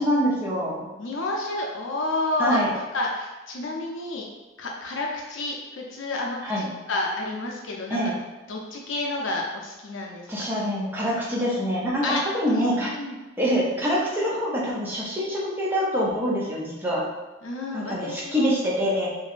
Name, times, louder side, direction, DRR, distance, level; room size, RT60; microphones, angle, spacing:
voice 1, 0.0-0.9 2.4-2.7 6.4-6.6 7.9-8.1 10.3-12.9 13.4-17.1 17.7-19.1, equal, 10° right, -5 dB, 0.6 m, -25 dB
voice 2, 1.0-4.3 4.6-8.1 8.5-10.3 12.0-12.2 12.5-13.2 17.4-18.5, left 2 dB, 75° left, -1 dB, 0.6 m, -30 dB
3.0 x 2.6 x 2.5 m, 1.2 s
head